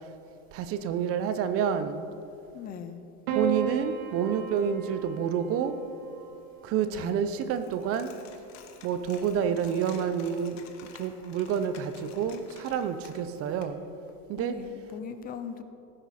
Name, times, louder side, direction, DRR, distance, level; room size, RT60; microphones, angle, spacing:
voice 1, 0.5-2.1 3.3-5.8 6.6-8.1 8.8-10.7 10.9-13.8 14.3-14.6, right 8 dB, 35° right, 11 dB, 0.6 m, -28 dB
voice 2, 2.5-3.0 6.9-7.2 14.4-15.6, left 7 dB, 20° left, 10 dB, 0.5 m, -40 dB
Piano, 3.3-7.7 8.9-9.6, right 4 dB, 60° right, 1.9 m, -36 dB
Coin (dropping), 7.4-13.6, left 8 dB, 40° left, 1.2 m, -53 dB
16.0 x 9.9 x 4.2 m, 2.7 s
supercardioid pair, 145°, 43 cm